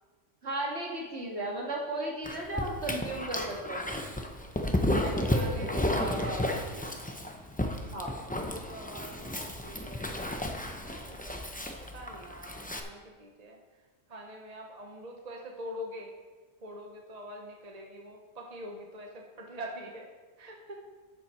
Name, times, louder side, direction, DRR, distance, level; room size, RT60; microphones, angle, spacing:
voice 1, 0.4-3.9 5.0-6.5 6.7-6.8 7.9-8.2, right 1 dB, 60° right, -2 dB, 2.3 m, -35 dB
Dog, 2.2-12.8, left 1 dB, 10° left, 0.6 m, -33 dB
voice 2, 5.3-6.3 8.3-10.2 10.9-13.6 14.1-16.1 16.6-20.1 20.4-20.8, equal, 35° right, 1 dB, 1.1 m, -44 dB
11.5 x 7.7 x 4.4 m, 1.3 s
omnidirectional pair, 1.3 m